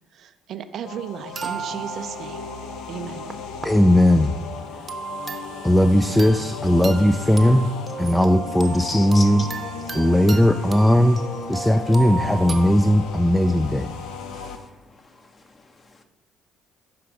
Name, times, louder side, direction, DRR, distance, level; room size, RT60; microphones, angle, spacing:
voice 1, 0.1-2.4 2.9-3.3, right 9 dB, 55° right, 10 dB, 0.4 m, -35 dB
sound 1, 0.8-14.6, left 5 dB, 70° left, 0.6 m, -36 dB
sound 2, 1.3-3.7 4.1-4.4 4.9-6.5 6.8-12.7, right 3 dB, 30° right, 0.8 m, -34 dB
voice 2, 3.6-4.3 5.6-7.7 8.0-9.4 9.9-11.2 11.5-13.9, left 1 dB, 5° left, 9 dB, 0.4 m, -17 dB
voice 3, 8.8-9.5 9.9-10.0 10.5-10.6 14.3-16.0, left 3 dB, 35° left, 6 dB, 0.9 m, -38 dB
5.8 x 5.0 x 4.8 m, 1.0 s
hypercardioid pair, 50°, 0 cm